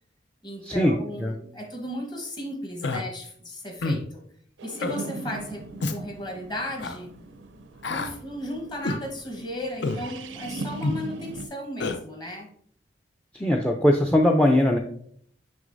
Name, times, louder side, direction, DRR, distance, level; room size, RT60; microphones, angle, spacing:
voice 1, 0.4-4.2 4.6-7.1 7.8-12.5, left 1 dB, 25° left, 3 dB, 1.0 m, -35 dB
Human voice, 2.8-3.0 3.8-4.1 4.8-5.0 5.8-6.0 6.8-7.0 7.8-8.1 8.8-9.0 9.8-10.0 10.8-11.0 11.8-12.0, left 2 dB, 70° left, 0.5 m, -28 dB
sound 1, 4.6-11.5, right 3 dB, 85° right, 0.5 m, -40 dB
voice 2, 13.3-14.8, left 1 dB, 5° left, 3 dB, 0.4 m, -20 dB
6.2 x 6.1 x 2.6 m, 0.63 s
head